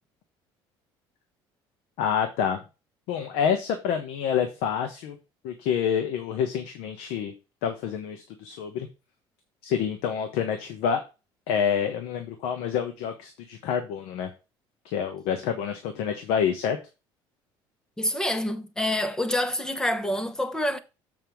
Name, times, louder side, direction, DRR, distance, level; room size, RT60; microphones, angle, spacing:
voice 1, 2.0-2.6 3.1-5.2 5.4-7.3 7.6-8.9 9.6-11.0 11.5-14.3 14.8-16.8, left 8 dB, 85° left, 1.3 m, -27 dB
voice 2, 18.0-20.8, left 1 dB, 5° left, 0.8 m, -27 dB
7.4 x 5.5 x 4.7 m
cardioid pair, 150°, 10 cm